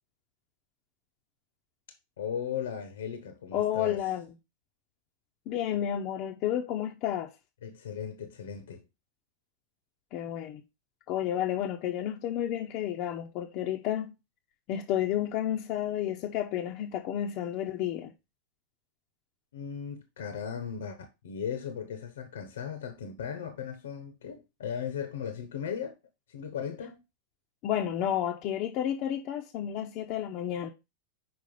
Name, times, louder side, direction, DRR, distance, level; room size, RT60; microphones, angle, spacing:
voice 1, 2.2-4.1 7.6-8.8 19.5-25.9 26.3-27.0, left 7 dB, 60° left, 0.9 m, -37 dB
voice 2, 3.5-4.3 5.5-7.3 10.1-10.6 11.1-14.1 14.7-18.1 27.6-30.7, left 11 dB, 40° left, 0.7 m, -31 dB
6.1 x 4.7 x 5.2 m
figure-of-eight pair, 90°, 0 cm